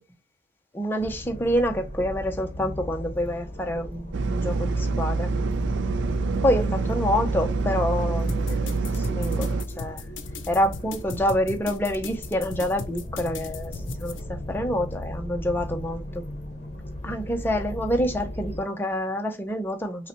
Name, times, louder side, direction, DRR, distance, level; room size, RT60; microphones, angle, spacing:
voice 1, 0.7-5.3 6.4-10.0 10.5-16.2 17.0-20.1, equal, 10° left, 0.6 m, -27 dB
sound 1, 1.0-18.6, left 1 dB, 40° left, 0.9 m, -37 dB
sound 2, 4.1-9.6, right 3 dB, 80° right, 0.4 m, -26 dB
sound 3, 8.3-14.2, left 5 dB, 85° left, 0.5 m, -37 dB
5.3 x 2.2 x 2.9 m
head